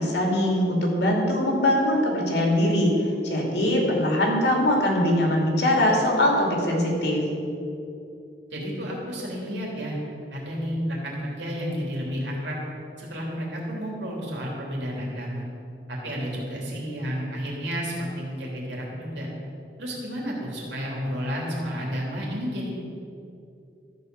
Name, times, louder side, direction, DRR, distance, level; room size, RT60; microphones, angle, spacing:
voice 1, 0.0-2.9 3.2-7.2, left 1 dB, 70° left, -1 dB, 2.6 m, -22 dB
voice 2, 8.5-10.0 10.3-12.6 13.0-15.4 15.9-19.3 19.8-22.7, equal, 80° right, -3 dB, 3.1 m, -31 dB
13.5 x 4.9 x 7.9 m, 2.6 s
head